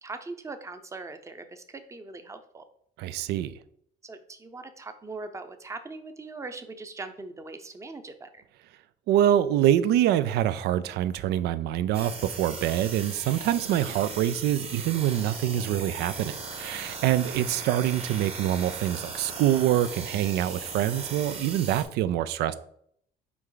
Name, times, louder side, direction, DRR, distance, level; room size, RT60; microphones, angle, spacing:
voice 1, 0.0-2.6 4.0-8.4, right 3 dB, 15° right, 0.7 m, -41 dB
voice 2, 3.0-3.5 9.1-22.5, right 12 dB, 80° right, 0.5 m, -25 dB
sound 1, 11.9-21.8, right 4 dB, 35° right, 1.2 m, -38 dB
6.0 x 4.5 x 3.9 m
cardioid pair, 110°, 17 cm